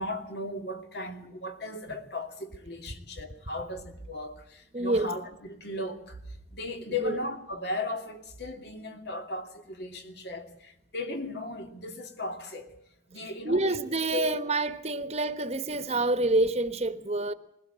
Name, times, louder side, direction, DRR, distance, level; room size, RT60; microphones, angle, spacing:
voice 1, 0.0-6.2 6.5-12.7 13.1-13.8 14.1-14.3 14.9-15.0, left 2 dB, 60° left, 2.7 m, -36 dB
voice 2, 4.7-5.1 7.0-7.1 13.4-17.3, right 2 dB, 35° right, 1.2 m, -27 dB
21.0 x 16.0 x 8.9 m
head